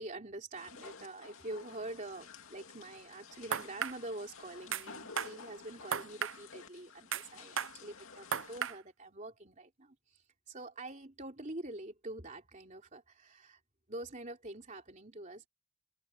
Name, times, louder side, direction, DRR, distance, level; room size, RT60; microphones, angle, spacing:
voice 1, 0.0-13.6 13.9-15.5, right 1 dB, 35° right, 3.5 m, -46 dB
sound 1, 0.5-8.7, left 5 dB, 70° left, 2.5 m, -52 dB
sound 2, 3.5-4.0 4.7-4.9 5.2-5.3 5.9-6.4 7.1-7.3 7.6-7.7 8.3-8.8, right 7 dB, 60° right, 0.7 m, -34 dB
open air
head